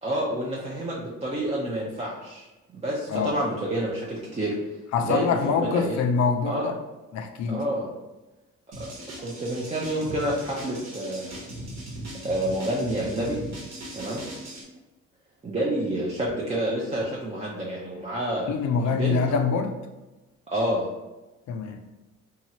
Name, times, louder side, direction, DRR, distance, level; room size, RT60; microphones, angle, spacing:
voice 1, 0.0-2.5 2.7-4.6 5.0-6.0 6.4-6.7 7.5-7.9 8.8-8.9 9.2-11.4 12.2-13.4 13.9-14.2 15.4-18.5 18.9-19.2 20.5-20.9, right 1 dB, 20° right, -5 dB, 0.5 m, -28 dB
voice 2, 4.9-6.8 7.1-7.6 18.5-19.7 21.5-21.8, left 5 dB, 65° left, 6 dB, 0.5 m, -25 dB
sound 1, 8.7-14.6, right 1 dB, 55° right, 1.1 m, -39 dB
2.8 x 2.3 x 2.9 m, 1.1 s
cardioid pair, 90°, 30 cm